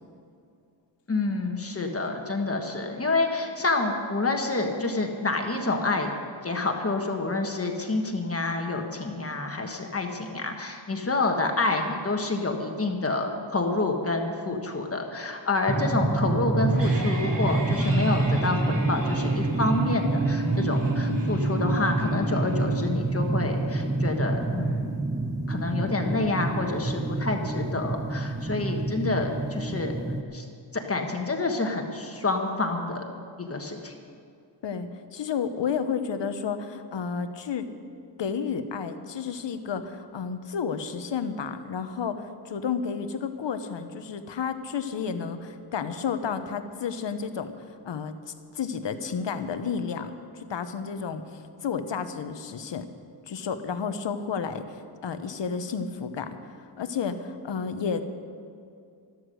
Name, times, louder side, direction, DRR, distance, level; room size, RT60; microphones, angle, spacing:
voice 1, 1.1-6.1 6.4-24.9 25.5-29.9 30.3-30.4 30.7-33.0 33.4-33.9, left 3 dB, 30° left, 3 dB, 1.3 m, -28 dB
sound 1, 15.7-30.2, right 2 dB, 10° right, 0.6 m, -27 dB
sound 2, 16.4-27.4, right 3 dB, 45° right, 2.4 m, -37 dB
voice 2, 34.6-37.7 38.2-48.1 48.5-52.9 53.3-54.6 55.0-58.1, left 6 dB, 70° left, 9 dB, 1.0 m, -31 dB
13.5 x 13.0 x 6.3 m, 2.4 s
wide cardioid pair, 140°, 46 cm